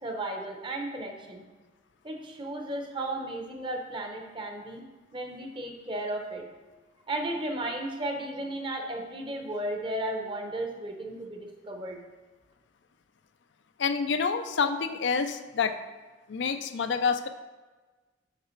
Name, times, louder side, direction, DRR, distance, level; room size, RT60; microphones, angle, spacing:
voice 1, 0.0-1.4 2.0-4.8 5.1-6.5 7.1-12.0, right 1 dB, 25° right, 3 dB, 0.9 m, -34 dB
voice 2, 13.8-15.8 16.3-17.3, left 5 dB, 65° left, 9 dB, 0.4 m, -27 dB
6.6 x 6.6 x 4.5 m, 1.3 s
head